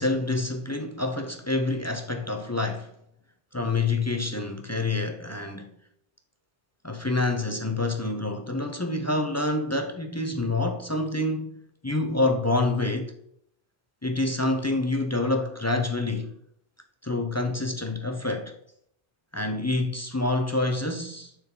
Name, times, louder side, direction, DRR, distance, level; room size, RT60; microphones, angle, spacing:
voice 1, 0.0-2.9 3.5-5.7 6.8-11.6 11.8-13.1 14.0-16.3 17.0-18.4 19.3-21.3, left 2 dB, 20° left, 0.6 m, -27 dB
6.9 x 4.5 x 3.9 m
omnidirectional pair, 1.1 m